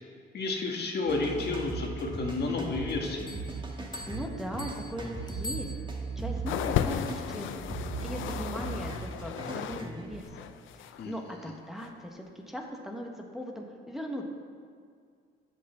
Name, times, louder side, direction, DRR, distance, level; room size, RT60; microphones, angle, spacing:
voice 1, 0.3-3.3 11.0-11.1 11.4-11.5, left 3 dB, 55° left, 0 dB, 1.7 m, -31 dB
sound 1, 1.1-10.2, right 4 dB, 25° right, 1.8 m, -38 dB
Bell, 3.3-6.3, left 1 dB, 20° left, 0.7 m, -44 dB
voice 2, 4.1-7.6 8.0-10.5 10.7-14.2, equal, ahead, 0 dB, 1.4 m, -39 dB
sound 2, 6.5-9.9 10.1-11.0 11.8-11.9, left 10 dB, 80° left, 0.5 m, -34 dB
8.5 x 7.6 x 6.8 m, 2.1 s
cardioid pair, 90°, 20 cm